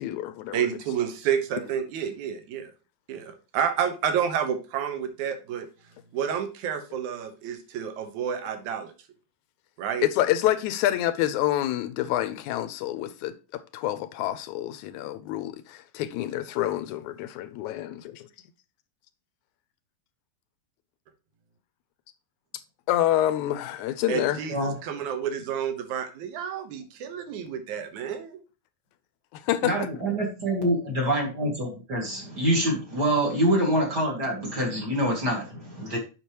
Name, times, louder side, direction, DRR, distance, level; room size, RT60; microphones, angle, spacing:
voice 1, 0.0-0.7 10.0-18.3 22.9-24.4 29.3-29.9, left 13 dB, 80° left, 1.8 m, -27 dB
voice 2, 0.5-2.7 3.1-5.7 6.1-8.9 9.8-10.1 24.1-28.4, right 8 dB, 70° right, 2.5 m, -30 dB
voice 3, 29.6-36.0, right 1 dB, 35° right, 2.5 m, -26 dB
8.4 x 6.3 x 3.0 m
omnidirectional pair, 3.7 m